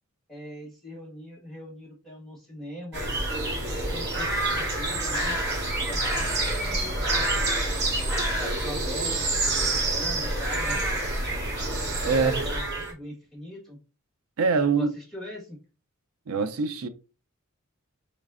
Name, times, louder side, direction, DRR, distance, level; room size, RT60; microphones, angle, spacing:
voice 1, 0.3-5.4 5.7-7.9 8.3-10.8 12.1-13.8 14.7-15.6, left 1 dB, ahead, 1.3 m, -41 dB
sound 1, 2.9-12.9, right 2 dB, 50° right, 1.0 m, -27 dB
voice 2, 12.0-12.4 14.4-14.9 16.3-16.9, right 4 dB, 75° right, 0.5 m, -24 dB
4.0 x 3.1 x 2.4 m
head